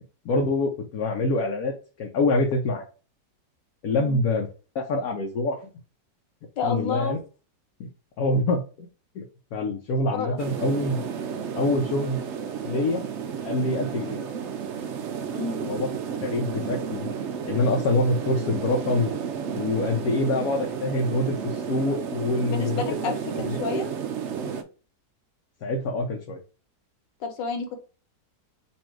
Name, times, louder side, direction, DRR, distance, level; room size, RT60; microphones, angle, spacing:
voice 1, 0.2-1.7 2.0-2.8 3.8-4.5 4.7-5.6 6.6-7.2 8.2-8.9 9.1-9.2 9.5-11.0 11.6-12.2 12.6-13.0 13.4-14.2 15.6-15.9 16.2-17.1 17.5-19.1 19.5-22.8 23.7-23.8 25.6-26.4, left 2 dB, 65° left, 1 dB, 1.1 m, -25 dB
voice 2, 3.9-4.2 6.6-7.2 10.1-10.4 15.3-15.7 22.5-23.2 23.4-23.9 27.2-27.8, left 5 dB, 80° left, 4 dB, 1.7 m, -30 dB
sound 1, 10.4-24.6, right 7 dB, 80° right, 0.6 m, -32 dB
4.2 x 2.7 x 4.5 m, 0.35 s
omnidirectional pair, 1.9 m